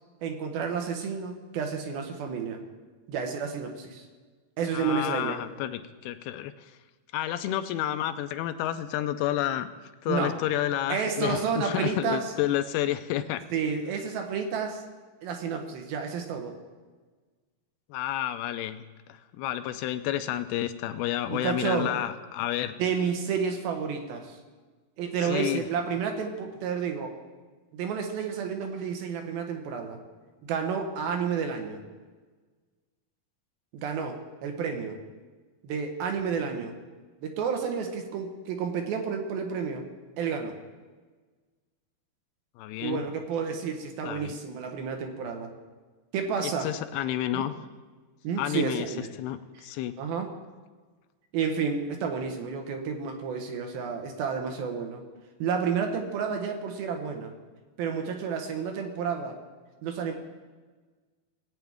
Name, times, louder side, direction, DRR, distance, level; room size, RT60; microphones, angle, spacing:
voice 1, 0.2-2.6 3.1-4.0 4.6-5.4 10.1-10.4 10.9-12.3 13.5-14.8 15.2-16.5 21.3-21.9 22.8-24.4 25.0-27.2 27.7-30.0 30.4-31.8 33.7-35.0 35.6-36.7 37.2-39.8 40.2-40.5 42.8-45.5 46.1-46.7 47.3-47.5 48.2-49.1 50.0-50.3 51.3-55.0 55.4-57.3 57.8-59.4 59.8-60.1, right 6 dB, 75° right, 4 dB, 2.8 m, -30 dB
voice 2, 4.7-6.5 7.1-9.7 10.0-13.4 17.9-18.8 19.1-22.7 25.2-25.7 42.6-43.1 44.0-44.4 46.4-47.5 48.4-48.9 49.2-49.9, left 12 dB, 85° left, 9 dB, 2.5 m, -30 dB
18.0 x 8.8 x 3.5 m, 1.4 s
omnidirectional pair, 4.5 m